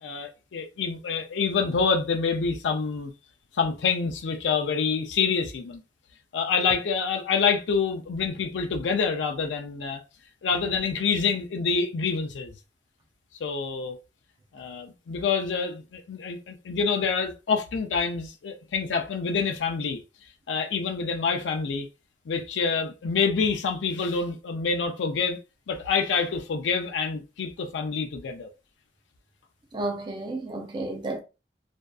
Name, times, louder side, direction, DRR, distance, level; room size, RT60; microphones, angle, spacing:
voice 1, 0.0-3.1 3.5-5.8 6.3-10.0 10.4-12.6 13.4-14.0 14.5-20.0 20.5-21.9 22.3-25.4 25.7-28.5, left 5 dB, 85° left, 0.4 m, -27 dB
voice 2, 29.7-31.2, right 2 dB, 25° right, 0.4 m, -32 dB
2.6 x 2.3 x 2.2 m
head